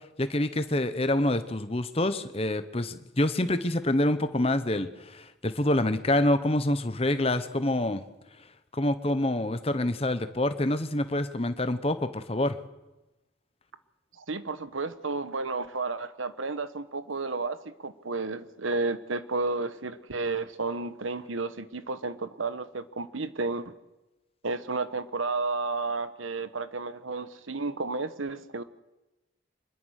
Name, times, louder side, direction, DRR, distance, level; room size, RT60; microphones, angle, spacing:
voice 1, 0.2-8.0 8.7-12.6, left 1 dB, 30° left, 11 dB, 1.1 m, -26 dB
voice 2, 14.2-23.7 24.4-28.6, right 3 dB, 85° right, 13 dB, 1.2 m, -32 dB
25.0 x 21.5 x 6.6 m, 1.0 s
head